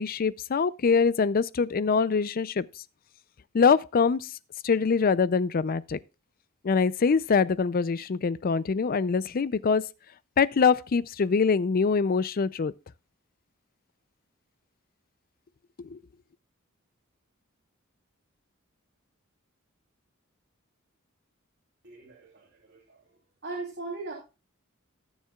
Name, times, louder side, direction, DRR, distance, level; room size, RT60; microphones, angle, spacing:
voice 1, 0.0-2.7 3.5-4.3 4.6-6.0 6.6-9.8 10.4-12.7 15.9-16.0, left 5 dB, 45° left, 0.4 m, -24 dB
voice 2, 21.8-23.0 23.4-24.1, right 3 dB, 55° right, 3.2 m, -39 dB
19.5 x 7.4 x 2.3 m
head